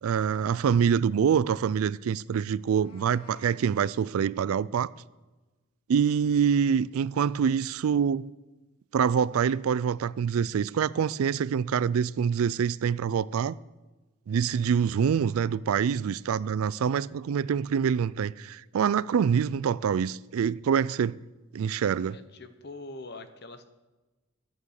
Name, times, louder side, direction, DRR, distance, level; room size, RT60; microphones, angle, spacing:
voice 1, 0.0-4.9 5.9-8.3 8.9-13.6 14.3-21.2 21.5-22.2, right 7 dB, 75° right, 0.3 m, -25 dB
Meow, 2.5-3.6, left 2 dB, 85° left, 1.5 m, -55 dB
voice 2, 22.1-23.7, left 2 dB, 45° left, 0.9 m, -43 dB
11.0 x 9.2 x 6.5 m
head